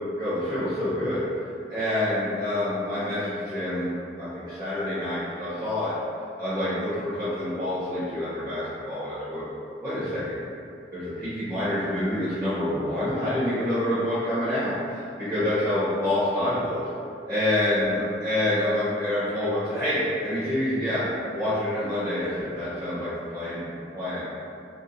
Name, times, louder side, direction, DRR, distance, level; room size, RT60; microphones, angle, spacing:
voice 1, 0.2-1.2 1.7-5.9 6.4-9.4 9.8-10.4 10.9-16.9 17.3-21.0 21.3-24.3, left 1 dB, 20° right, -15 dB, 1.0 m, -27 dB
2.6 x 2.4 x 3.8 m, 2.5 s
head